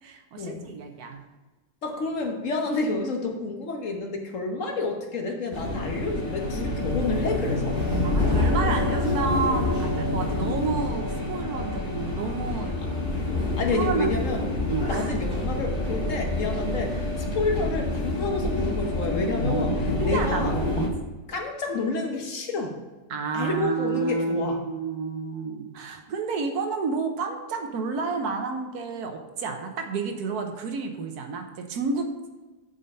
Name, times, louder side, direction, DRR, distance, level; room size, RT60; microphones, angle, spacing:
voice 1, 0.0-1.2 8.0-12.8 13.7-14.2 14.7-15.1 19.5-20.9 23.1-32.1, right 4 dB, 80° right, 4 dB, 1.4 m, -30 dB
voice 2, 1.8-7.8 13.6-14.4 14.9-19.7 20.0-20.5 21.3-22.8 23.3-24.6, left 3 dB, 60° left, 3 dB, 1.3 m, -29 dB
sound 1, 5.5-20.9, left 2 dB, 35° left, 1.9 m, -27 dB
7.6 x 5.5 x 5.3 m, 1.2 s
omnidirectional pair, 1.6 m